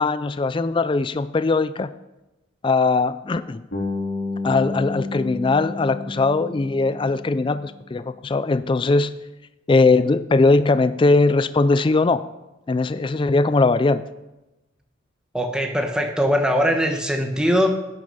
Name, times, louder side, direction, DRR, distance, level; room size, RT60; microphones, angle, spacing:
voice 1, 0.0-1.9 2.6-3.6 4.4-9.1 9.7-12.3 12.7-14.0, left 3 dB, 25° left, 14 dB, 0.3 m, -20 dB
Bass guitar, 3.7-7.8, left 3 dB, 65° left, 4.0 m, -31 dB
voice 2, 15.3-17.7, equal, 5° right, 3 dB, 1.1 m, -21 dB
11.5 x 9.5 x 5.5 m, 1.0 s
head